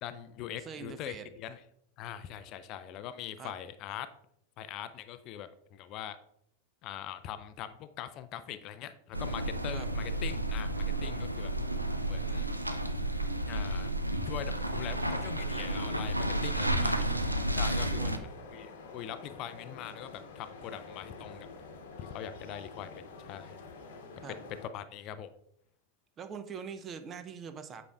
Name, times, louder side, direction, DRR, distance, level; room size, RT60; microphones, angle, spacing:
voice 1, 0.0-1.6 2.0-4.1 4.6-6.2 6.8-11.5 12.1-12.5 13.5-13.9 14.3-16.9 17.6-21.5 22.0-22.9 23.2-23.6 24.7-25.3, left 10 dB, 40° left, 12 dB, 0.4 m, -42 dB
voice 2, 0.6-1.3 3.4-3.5 9.7-9.9 16.6-17.3 17.8-18.3 24.2-24.4 26.2-27.8, right 6 dB, 25° right, 9 dB, 0.5 m, -43 dB
sound 1, 9.1-18.2, right 1 dB, 90° right, 0.4 m, -32 dB
sound 2, 14.6-24.7, left 4 dB, 55° left, 1.0 m, -48 dB
8.2 x 5.1 x 2.3 m, 0.73 s
figure-of-eight pair, 90°, 0 cm